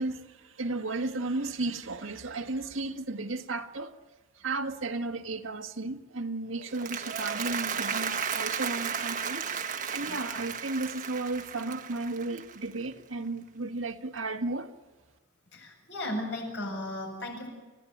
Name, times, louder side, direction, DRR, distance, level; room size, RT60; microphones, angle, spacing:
voice 1, 0.0-4.0 4.4-9.6 9.9-14.7, right 2 dB, 85° right, 1.7 m, -34 dB
Applause, 6.6-12.9, right 6 dB, 40° right, 1.4 m, -34 dB
voice 2, 15.5-17.5, left 1 dB, 60° left, 8.0 m, -35 dB
29.0 x 17.0 x 9.3 m
head